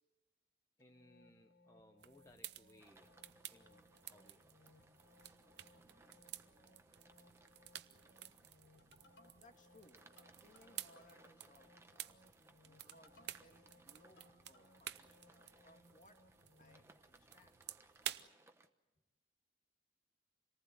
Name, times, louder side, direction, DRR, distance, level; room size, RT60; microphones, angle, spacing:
sound 1, 0.8-16.9, left 1 dB, 90° left, 3.9 m, -68 dB
voice 1, 0.8-3.1 3.5-4.5, left 1 dB, 15° left, 3 dB, 1.1 m, -65 dB
sound 2, 2.0-18.3, right 12 dB, 65° right, 0.7 m, -53 dB
sound 3, 2.8-18.7, right 2 dB, 15° right, 1.0 m, -67 dB
voice 2, 9.4-10.0 10.4-12.2 12.6-16.2 16.6-17.6, left 1 dB, 45° left, 5 dB, 2.1 m, -66 dB
27.0 x 19.0 x 8.2 m, 1.1 s
head